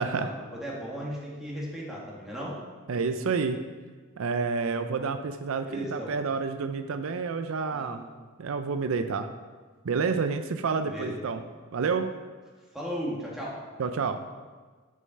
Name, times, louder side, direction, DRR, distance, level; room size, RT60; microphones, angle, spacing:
voice 1, 0.0-2.6 5.6-6.1 7.7-8.1 10.8-11.2 12.7-13.6, equal, ahead, -5 dB, 1.7 m, -36 dB
voice 2, 2.9-3.6 4.2-8.0 8.4-9.3 9.8-11.4 11.7-12.1 13.8-14.2, right 5 dB, 75° right, 8 dB, 0.4 m, -29 dB
6.4 x 5.5 x 6.6 m, 1.4 s
head